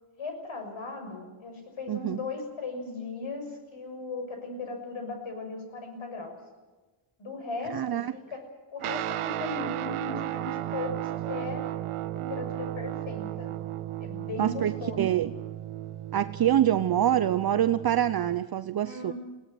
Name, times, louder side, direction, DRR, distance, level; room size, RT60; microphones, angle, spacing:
voice 1, 0.2-6.4 7.2-8.4 8.7-11.6 12.1-13.6 14.0-15.2 18.8-19.1, left 3 dB, 70° left, 5 dB, 6.6 m, -37 dB
voice 2, 1.9-2.2 7.7-8.1 14.4-15.3 16.1-19.1, right 11 dB, 50° right, 12 dB, 0.7 m, -25 dB
Guitar, 8.8-18.4, right 13 dB, 90° right, 0.8 m, -35 dB
21.0 x 17.0 x 9.5 m, 1.2 s
cardioid pair, 105°, 49 cm